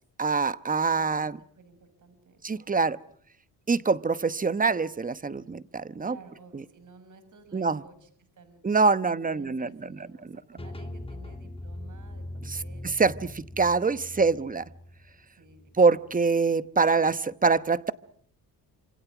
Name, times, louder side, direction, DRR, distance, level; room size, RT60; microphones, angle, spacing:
voice 1, 0.2-1.4 2.4-3.0 3.7-6.2 7.5-7.8 8.6-9.7 12.5-12.6 12.8-14.6 15.8-17.9, right 4 dB, 20° right, 15 dB, 1.1 m, -24 dB
voice 2, 0.9-2.5 6.0-8.6 9.1-12.9 14.1-14.5 15.3-15.6, right 4 dB, 50° right, 11 dB, 6.1 m, -52 dB
sound 1, 10.6-16.3, left 1 dB, 15° left, 1.5 m, -41 dB
28.0 x 26.5 x 6.1 m, 0.62 s
cardioid pair, 95°, 38 cm